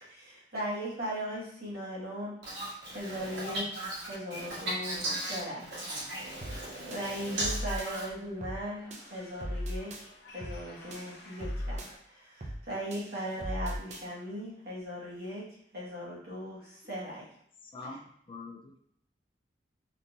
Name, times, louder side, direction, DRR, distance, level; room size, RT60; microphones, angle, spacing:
voice 1, 0.0-2.3 2.9-3.6 4.1-5.0 5.3-5.7 6.9-10.1 10.3-15.4 15.7-17.3 17.8-18.0, equal, 60° right, -7 dB, 1.3 m, -38 dB
voice 2, 3.0-4.0 4.3-4.6 4.8-5.4 5.8-8.0, right 1 dB, 80° right, -6 dB, 1.5 m, -36 dB
sound 1, 6.4-6.6 6.9-7.9 8.4-8.6 8.9-10.0 10.4-10.6 10.9-11.9 12.4-12.6 12.9-14.0, equal, 40° right, 0.5 m, -37 dB
sound 2, 7.5-12.0, left 2 dB, 75° left, 0.7 m, -54 dB
voice 3, 17.7-18.8, left 3 dB, 30° left, 2 dB, 0.4 m, -44 dB
3.7 x 2.4 x 2.7 m, 0.68 s
head